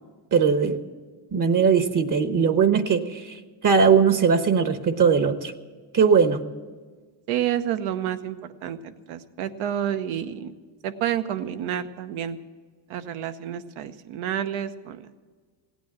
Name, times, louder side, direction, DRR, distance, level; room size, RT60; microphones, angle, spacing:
voice 1, 0.3-0.8 1.3-5.5 5.9-6.4, right 6 dB, 40° right, 10 dB, 1.0 m, -20 dB
voice 2, 7.3-10.5 10.8-12.4 12.9-15.2, right 10 dB, 85° right, 10 dB, 1.0 m, -29 dB
16.5 x 9.3 x 7.6 m, 1.4 s
cardioid pair, 95°, 47 cm